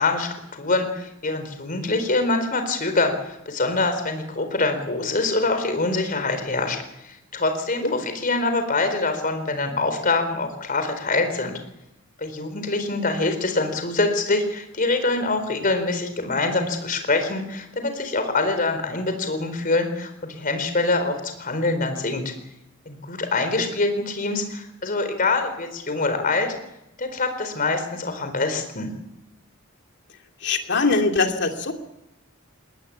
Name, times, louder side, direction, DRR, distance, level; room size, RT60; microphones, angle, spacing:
voice 1, 0.0-6.8 7.0-7.8 8.2-11.6 12.2-22.2 22.9-26.5 27.0-28.9, left 3 dB, 45° left, 7 dB, 4.2 m, -24 dB
voice 2, 30.4-31.7, left 3 dB, 60° left, 4 dB, 2.6 m, -22 dB
21.0 x 18.5 x 8.6 m, 0.85 s
head